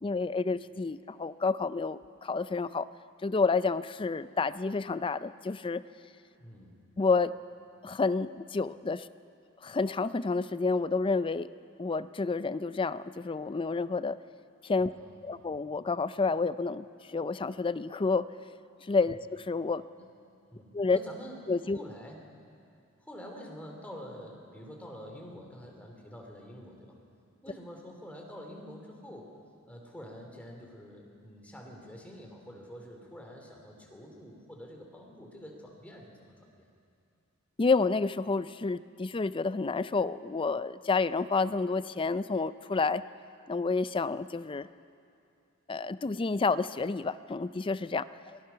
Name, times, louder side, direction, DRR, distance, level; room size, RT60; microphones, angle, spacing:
voice 1, 0.0-2.9 3.2-5.8 7.0-7.3 7.8-9.1 9.6-11.5 11.8-14.2 14.6-14.9 15.2-18.3 18.8-19.8 20.7-21.0 21.5-21.8 37.6-43.0 43.5-44.7 45.7-48.4, left 4 dB, 25° left, 15 dB, 0.4 m, -29 dB
voice 2, 6.3-6.7 14.9-15.4 19.1-19.2 20.0-20.1 20.5-21.4 21.7-22.2 23.0-27.0 27.4-29.3 29.7-36.7, equal, 5° left, 0 dB, 3.0 m, -47 dB
24.5 x 18.5 x 5.7 m, 2.5 s
head